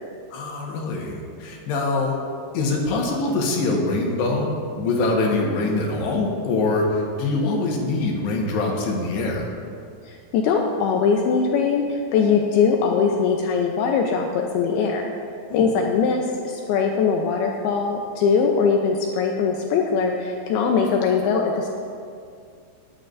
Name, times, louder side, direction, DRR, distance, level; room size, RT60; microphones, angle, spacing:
voice 1, 0.3-2.2 2.5-9.5 15.5-15.7, left 2 dB, 70° left, -1 dB, 3.3 m, -24 dB
voice 2, 10.1-15.1 15.5-21.7, left 5 dB, 90° left, 1 dB, 2.2 m, -21 dB
18.0 x 11.0 x 2.6 m, 2.3 s
omnidirectional pair, 5.4 m